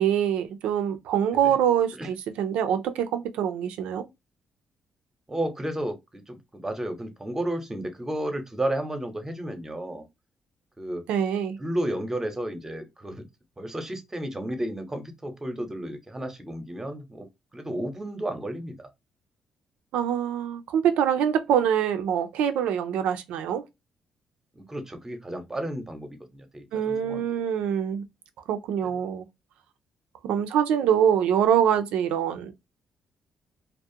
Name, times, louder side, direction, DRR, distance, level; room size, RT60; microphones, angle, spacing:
voice 1, 0.0-4.1 11.1-11.6 19.9-23.6 26.7-28.0 28.5-29.2 30.2-32.5, right 9 dB, 85° right, 0.4 m, -24 dB
voice 2, 5.3-10.1 10.8-11.0 11.6-13.3 13.6-17.3 17.5-18.8 24.6-27.2 28.8-28.9, right 1 dB, 20° right, 0.8 m, -32 dB
2.4 x 2.1 x 2.6 m
supercardioid pair, 65°, 2 cm